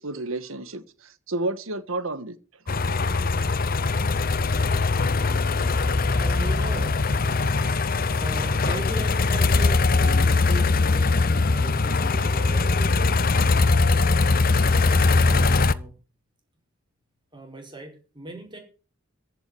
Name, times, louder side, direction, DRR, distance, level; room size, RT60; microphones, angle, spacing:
voice 1, 0.0-2.4, right 2 dB, 80° right, 1.7 m, -31 dB
sound 1, 2.7-15.7, left 3 dB, 45° left, 0.7 m, -21 dB
voice 2, 6.2-7.1 8.2-14.1 14.6-16.0 17.3-18.6, right 1 dB, 20° right, 4.9 m, -39 dB
15.0 x 6.7 x 8.0 m
head